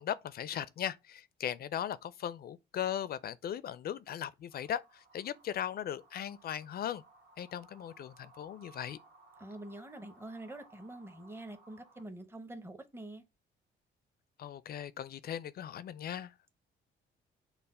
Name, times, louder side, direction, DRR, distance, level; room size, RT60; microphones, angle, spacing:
voice 1, 0.0-7.0 7.4-9.0 14.4-16.3, left 10 dB, 50° left, 0.4 m, -38 dB
sound 1, 4.5-12.0, right 2 dB, 55° right, 1.3 m, -61 dB
voice 2, 9.4-13.2, right 1 dB, 10° right, 0.7 m, -46 dB
5.5 x 2.1 x 4.1 m
cardioid pair, 90°, 20 cm